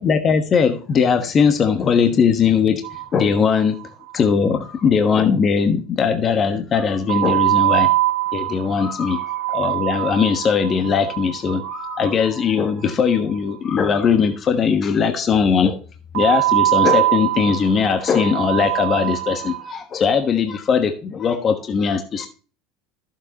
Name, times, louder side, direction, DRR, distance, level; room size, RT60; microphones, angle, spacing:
voice 1, 0.0-2.8 3.1-3.8 4.1-7.9 8.3-15.8 16.1-22.3, left 6 dB, 35° left, 7 dB, 1.2 m, -19 dB
sound 1, 2.8-3.8 4.1-4.2 4.4-4.5 7.1-13.2 16.1-19.7, right 17 dB, 85° right, 1.9 m, -23 dB
12.0 x 7.3 x 2.8 m, 0.37 s
supercardioid pair, 105°, 0 cm